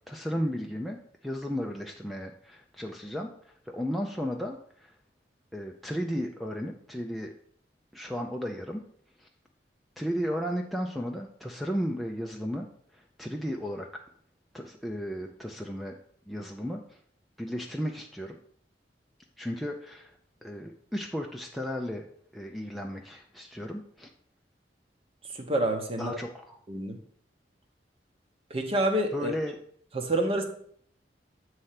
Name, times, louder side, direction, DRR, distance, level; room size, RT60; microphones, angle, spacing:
voice 1, 0.1-4.9 5.5-7.3 7.9-8.8 9.2-9.3 10.0-14.0 14.5-16.0 16.3-17.0 17.4-18.4 19.4-20.1 20.4-22.0 22.3-24.1 26.0-26.6 29.1-29.6, equal, ahead, 0 dB, 0.4 m, -34 dB
voice 2, 25.3-26.2 26.7-27.0 28.5-29.3 29.9-30.4, right 1 dB, 35° right, 3 dB, 1.0 m, -27 dB
7.8 x 3.3 x 5.7 m, 0.62 s
head